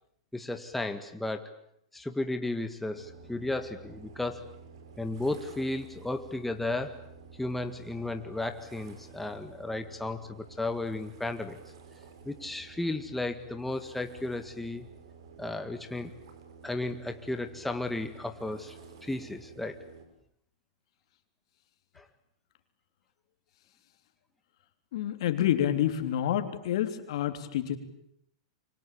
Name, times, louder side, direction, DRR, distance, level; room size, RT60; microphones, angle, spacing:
voice 1, 0.3-1.5 1.9-4.4 5.0-7.0 7.4-11.6 12.3-14.9 15.4-16.1 16.6-18.8 19.0-19.8 22.0-22.1, left 2 dB, 5° left, 7 dB, 1.8 m, -34 dB
sound 1, 2.9-20.1, right 5 dB, 70° right, 5.6 m, -51 dB
voice 2, 24.9-27.8, left 11 dB, 70° left, 8 dB, 3.4 m, -28 dB
27.0 x 24.5 x 8.6 m, 0.70 s
hypercardioid pair, 125°, 3 cm